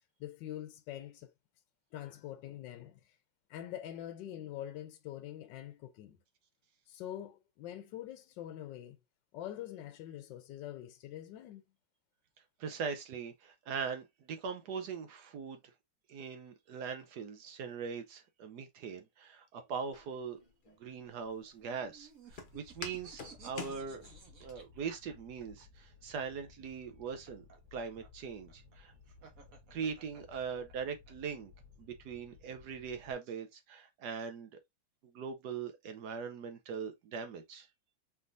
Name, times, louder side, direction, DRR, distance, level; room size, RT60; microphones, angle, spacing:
voice 1, 0.2-1.3 1.9-3.2 3.5-6.2 6.9-9.0 9.3-11.6, left 12 dB, 80° left, 1.3 m, -44 dB
voice 2, 12.6-15.6 16.1-20.4 20.8-22.1 22.5-24.0 24.4-27.4 27.7-28.9 29.7-31.5 31.8-34.6 35.1-37.7, right 6 dB, 70° right, 1.1 m, -41 dB
Walk footsteps, 19.9-24.5, left 4 dB, 45° left, 0.6 m, -48 dB
sound 1, 21.6-25.6 26.9-31.1, right 5 dB, 55° right, 1.4 m, -57 dB
Fire, 22.3-33.1, left 4 dB, 90° right, 2.0 m, -59 dB
4.5 x 3.5 x 2.5 m
omnidirectional pair, 2.0 m